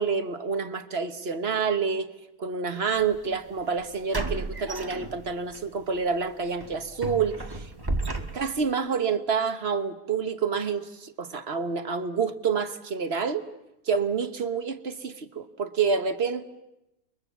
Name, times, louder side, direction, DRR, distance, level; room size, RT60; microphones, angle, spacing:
voice 1, 0.0-2.1 2.4-7.7 8.3-13.5 13.8-16.4, right 5 dB, 45° right, 9 dB, 1.3 m, -28 dB
sound 1, 3.0-3.2 4.1-5.6 6.0-6.2 6.6-8.7, right 2 dB, 15° right, 1.3 m, -33 dB
29.5 x 22.5 x 7.2 m, 0.89 s
omnidirectional pair, 1.6 m